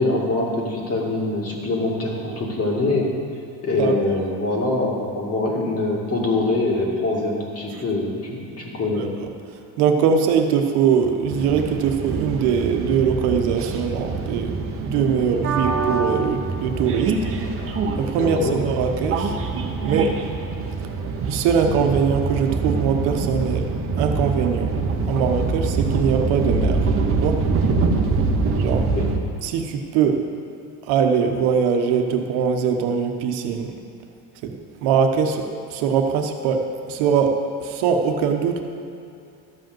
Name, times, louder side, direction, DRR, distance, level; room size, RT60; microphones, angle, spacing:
voice 1, 0.0-3.1 3.6-9.0 18.1-18.6 28.9-29.0, left 2 dB, 35° left, -2 dB, 2.3 m, -24 dB
voice 2, 8.9-9.3 9.8-17.2 18.0-19.4 19.8-20.2 21.3-23.7 24.0-24.7 25.1-26.8 27.2-27.4 28.6-28.9 29.4-30.2 30.9-33.8 34.4-38.6, right 6 dB, 80° right, 4 dB, 1.2 m, -22 dB
sound 1, 11.3-29.2, right 4 dB, 35° right, 1.0 m, -24 dB
13.0 x 5.2 x 7.8 m, 2.6 s
cardioid pair, 135°, 39 cm